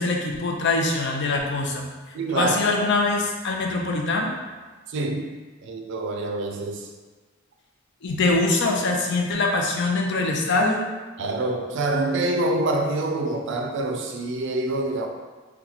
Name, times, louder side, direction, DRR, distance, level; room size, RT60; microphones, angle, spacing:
voice 1, 0.0-1.8 2.3-4.3 8.0-10.8, left 3 dB, 60° left, 1 dB, 0.5 m, -23 dB
voice 2, 2.1-2.6 4.9-5.3 5.6-6.9 11.2-15.1, right 2 dB, 65° right, 3 dB, 0.4 m, -26 dB
2.9 x 2.2 x 3.8 m, 1.3 s
head